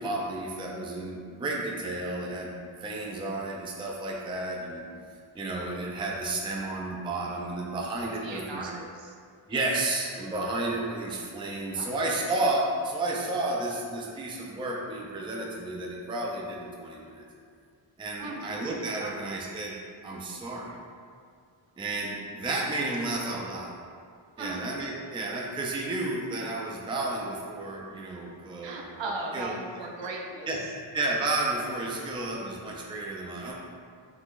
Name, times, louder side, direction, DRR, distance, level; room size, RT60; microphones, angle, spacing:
voice 1, 0.0-4.8 5.3-8.7 9.5-17.3 18.0-19.8 20.0-20.8 21.8-23.7 24.4-28.8 29.3-29.5 30.5-33.5, right 2 dB, 10° right, -2 dB, 0.3 m, -32 dB
voice 2, 8.2-9.2 11.8-12.2 18.2-18.5 19.0-19.3 24.4-24.6 28.6-30.5, right 2 dB, 65° right, 0 dB, 0.6 m, -37 dB
3.8 x 2.9 x 2.5 m, 2.2 s
wide cardioid pair, 85°, 47 cm